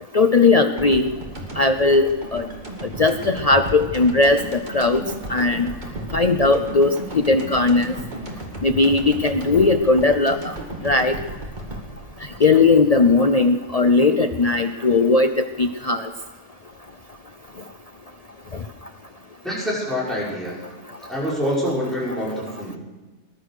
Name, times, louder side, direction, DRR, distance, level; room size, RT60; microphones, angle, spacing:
voice 1, 0.1-1.1 1.6-2.4 3.0-4.4 4.7-5.0 5.3-5.7 6.1-6.9 7.3-7.9 8.6-10.4 10.8-11.1 12.4-16.0, left 3 dB, 65° left, 7 dB, 0.3 m, -17 dB
sound 1, 0.8-13.6, right 1 dB, 30° right, 2.3 m, -34 dB
voice 2, 19.4-20.6 21.1-22.8, equal, ahead, -7 dB, 5.8 m, -26 dB
20.0 x 11.5 x 6.5 m, 1.2 s
omnidirectional pair, 1.5 m